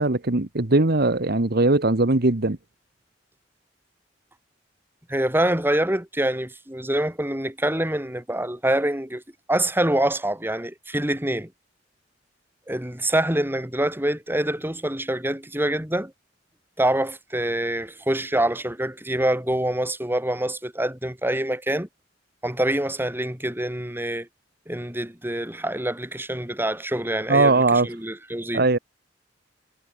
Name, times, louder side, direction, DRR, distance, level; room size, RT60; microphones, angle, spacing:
voice 1, 0.0-2.6 27.3-27.9 28.5-28.8, right 2 dB, 55° right, 1.5 m, -20 dB
voice 2, 5.1-9.2 9.5-11.5 12.7-16.1 16.8-21.9 22.4-24.3 24.7-28.6, right 1 dB, 10° right, 7.4 m, -25 dB
head